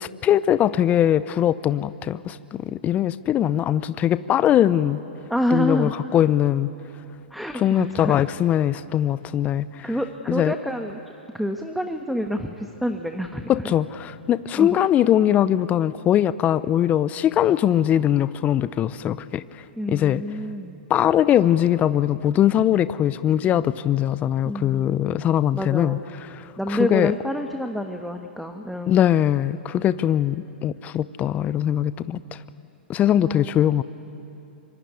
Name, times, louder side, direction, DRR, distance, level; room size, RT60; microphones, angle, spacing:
voice 1, 0.0-5.0 5.5-6.7 7.5-9.9 10.3-10.5 13.5-20.2 20.9-26.0 26.3-27.1 28.9-32.4 32.9-33.8, left 11 dB, 25° left, 16 dB, 0.6 m, -21 dB
voice 2, 5.3-5.9 7.3-8.2 9.8-11.0 11.3-13.7 14.6-14.8 19.8-20.8 24.4-25.0 25.5-26.0 26.6-29.0 33.2-33.6, equal, ahead, 5 dB, 1.4 m, -28 dB
25.0 x 24.0 x 9.5 m, 2.9 s
hypercardioid pair, 110°, 6 cm